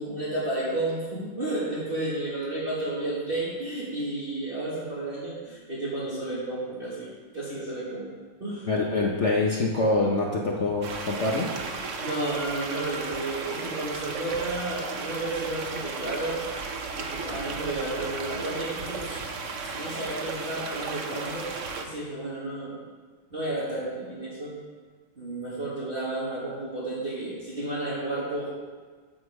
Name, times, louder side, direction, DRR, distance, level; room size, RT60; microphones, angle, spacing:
voice 1, 0.0-8.1 8.4-8.7 12.0-16.4 17.0-19.2 19.7-21.5 21.8-22.8 23.3-24.6 25.2-28.5, right 2 dB, 30° right, -8 dB, 1.9 m, -32 dB
voice 2, 8.6-11.5, left 2 dB, 55° left, -2 dB, 0.8 m, -25 dB
sound 1, 10.8-21.9, right 4 dB, 60° right, 0.8 m, -35 dB
8.7 x 7.7 x 4.8 m, 1.5 s
omnidirectional pair, 2.3 m